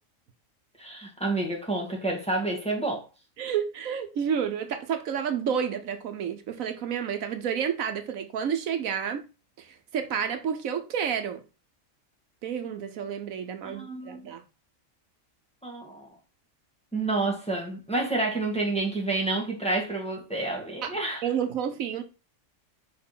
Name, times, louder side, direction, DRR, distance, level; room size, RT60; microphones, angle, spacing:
voice 1, 0.8-3.1 13.6-14.3 15.6-16.1 16.9-21.2, right 2 dB, 5° left, 1.7 m, -29 dB
voice 2, 3.4-9.2 9.6-11.4 12.4-14.4 20.8-20.9 21.2-22.0, right 8 dB, 75° right, 1.2 m, -30 dB
5.2 x 4.4 x 5.5 m
omnidirectional pair, 1.4 m